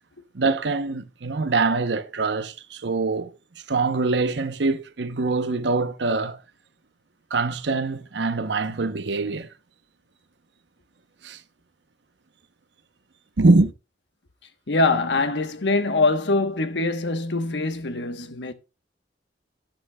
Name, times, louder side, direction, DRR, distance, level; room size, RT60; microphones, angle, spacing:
voice 1, 0.3-3.3 3.7-6.4 7.3-9.5 11.2-11.4 13.4-13.7, right 3 dB, 80° right, 0.8 m, -23 dB
voice 2, 14.7-18.5, left 3 dB, 85° left, 1.1 m, -23 dB
11.5 x 8.8 x 2.2 m
head